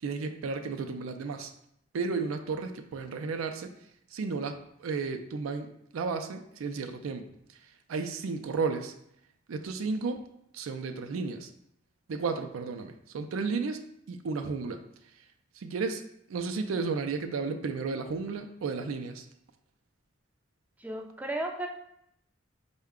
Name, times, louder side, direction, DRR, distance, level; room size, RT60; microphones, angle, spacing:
voice 1, 0.0-1.5 1.9-3.7 4.1-7.3 7.9-8.9 9.5-10.2 10.5-11.5 12.1-13.8 14.1-14.8 15.6-16.0 16.3-19.3, right 4 dB, 85° right, 6 dB, 0.4 m, -33 dB
voice 2, 20.8-21.7, right 1 dB, 10° right, 1 dB, 0.4 m, -34 dB
4.6 x 2.2 x 3.6 m, 0.74 s
head